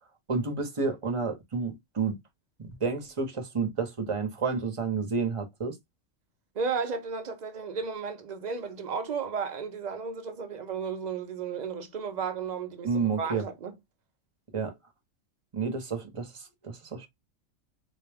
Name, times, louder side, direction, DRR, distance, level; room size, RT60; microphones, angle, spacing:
voice 1, 0.3-2.1 2.6-5.8 12.8-13.4 14.5-14.7 15.5-17.1, right 4 dB, 30° right, 0.7 m, -30 dB
voice 2, 6.5-13.7, right 5 dB, 65° right, 0.4 m, -34 dB
4.0 x 2.2 x 3.4 m
omnidirectional pair, 1.5 m